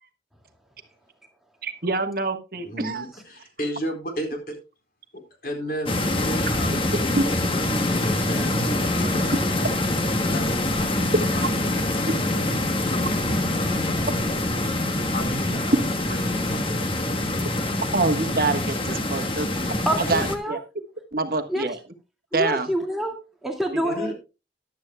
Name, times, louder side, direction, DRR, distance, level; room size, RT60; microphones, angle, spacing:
voice 1, 1.6-3.0 17.9-19.7 20.1-20.6 21.1-21.8 22.3-22.7 23.7-23.8, right 3 dB, 50° right, 7 dB, 1.4 m, -26 dB
voice 2, 2.6-4.6 5.1-9.4 10.3-12.9 13.5-13.9 15.1-17.2 23.8-24.1, equal, 50° left, 5 dB, 4.2 m, -35 dB
sound 1, 5.9-20.4, left 1 dB, 30° left, 1.3 m, -25 dB
voice 3, 19.9-20.6 21.5-21.7 22.3-24.1, equal, ahead, 1 dB, 2.2 m, -27 dB
15.0 x 11.5 x 2.3 m, 0.28 s
head